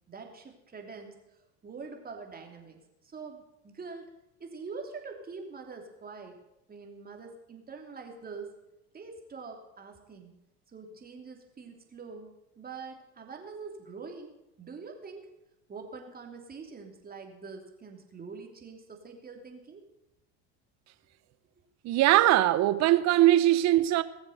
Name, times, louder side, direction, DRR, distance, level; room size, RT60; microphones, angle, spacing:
voice 1, 0.1-2.8 3.0-4.1 4.4-6.4 6.7-8.5 8.9-10.4 10.7-12.3 12.6-15.3 15.7-19.9, right 4 dB, 30° right, 3.1 m, -44 dB
voice 2, 21.8-24.0, right 14 dB, 55° right, 0.9 m, -21 dB
19.0 x 7.2 x 6.6 m
supercardioid pair, 90°, 32 cm